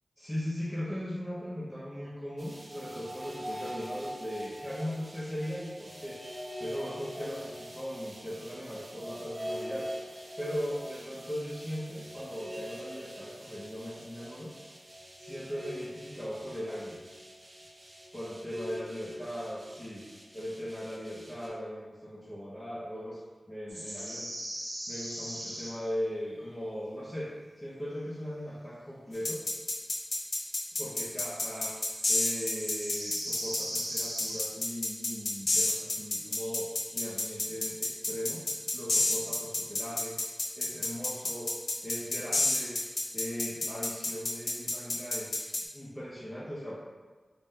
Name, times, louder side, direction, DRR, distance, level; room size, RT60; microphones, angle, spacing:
voice 1, 0.2-6.2 6.6-9.9 10.4-14.5 15.1-17.0 18.1-20.1 20.3-23.2 23.5-24.3 24.9-29.4 30.8-31.8 32.1-40.2 40.6-41.5 41.8-42.8 43.1-46.8, equal, 20° left, -8 dB, 0.7 m, -38 dB
sound 1, 2.4-21.5, equal, 40° right, 0.6 m, -44 dB
sound 2, 23.7-25.9 26.2-26.4 30.8-34.6 36.3-36.6 36.9-37.4, right 1 dB, 60° right, 1.1 m, -40 dB
sound 3, 29.2-45.6, left 2 dB, 85° left, 0.5 m, -30 dB
5.2 x 2.1 x 2.7 m, 1.4 s
wide cardioid pair, 60°, 0 cm